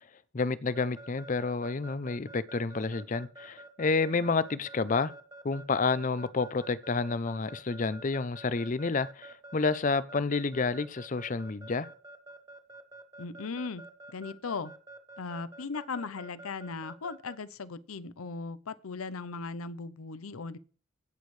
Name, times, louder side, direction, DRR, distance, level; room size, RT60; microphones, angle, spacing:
voice 1, 0.3-5.1 5.4-11.9, left 4 dB, 35° left, 0.5 m, -29 dB
Keyboard (musical) / Alarm, 0.7-17.4, right 2 dB, 15° right, 1.1 m, -48 dB
voice 2, 13.2-13.8 14.1-14.7 15.2-20.6, left 4 dB, 85° left, 0.7 m, -38 dB
16.5 x 6.3 x 3.2 m
head